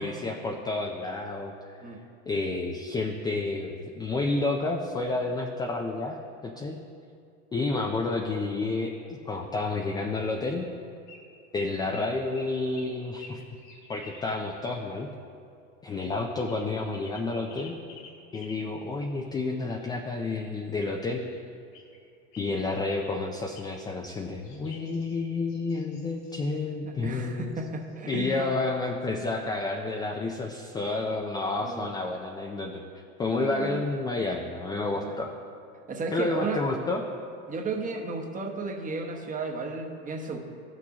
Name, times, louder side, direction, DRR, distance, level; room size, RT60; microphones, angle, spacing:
voice 1, 0.0-1.9 2.3-6.8 7.5-10.7 11.5-13.4 13.9-15.1 15.8-17.8 18.3-21.2 22.4-27.5 28.1-32.8 33.2-35.3 36.1-37.0, left 3 dB, 10° left, 2 dB, 0.3 m, -30 dB
sound 1, 11.1-11.3 11.5-14.8 16.4-18.7 19.2-20.2 21.0-22.0 22.3-23.2 23.5-23.9 24.4-26.6 27.5-27.6 27.8-28.1, left 4 dB, 65° left, 2.1 m, -51 dB
voice 2, 26.8-28.5 31.6-31.9 33.3-33.9 35.0-35.1 35.9-36.6 37.5-40.4, right 3 dB, 20° right, 3 dB, 1.0 m, -34 dB
14.0 x 6.1 x 2.9 m, 2.4 s
hypercardioid pair, 105°, 39 cm